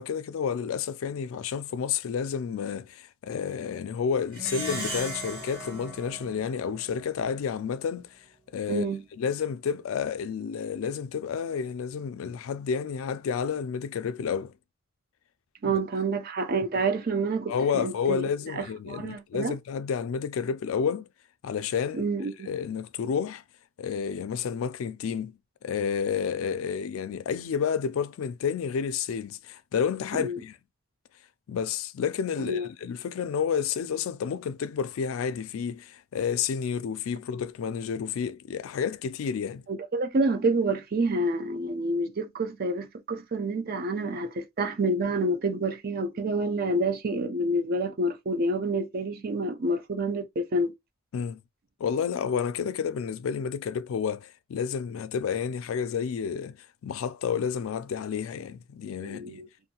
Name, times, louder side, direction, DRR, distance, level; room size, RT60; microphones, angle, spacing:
voice 1, 0.0-8.2 8.5-8.9 9.2-14.5 15.6-15.8 17.5-21.1 21.4-22.0 22.5-23.4 23.8-30.6 31.5-39.6 51.1-51.4 51.8-59.4, left 7 dB, 80° left, 0.3 m, -30 dB
Plucked string instrument, 4.3-7.1, right 1 dB, 25° right, 1.5 m, -37 dB
voice 2, 8.7-9.0 15.6-18.2 18.6-19.5 21.9-22.5 30.2-30.4 32.4-32.7 39.7-50.7 59.0-59.5, right 2 dB, 45° right, 0.4 m, -28 dB
2.6 x 2.2 x 2.8 m
head